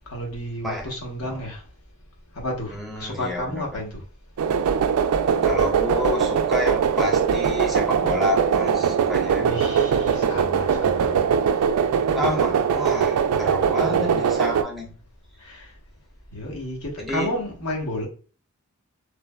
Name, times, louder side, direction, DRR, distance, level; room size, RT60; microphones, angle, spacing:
voice 1, 0.1-1.6 2.3-4.0 9.4-11.3 12.1-12.2 12.9-13.0 13.8-14.4 15.4-15.7 16.3-18.1, left 1 dB, 70° left, 1.0 m, -32 dB
voice 2, 2.7-3.8 5.4-9.6 12.1-14.9 17.0-17.3, left 1 dB, ahead, 0.6 m, -29 dB
sound 1, 4.4-14.6, right 7 dB, 80° right, 0.3 m, -21 dB
3.2 x 2.0 x 2.2 m
head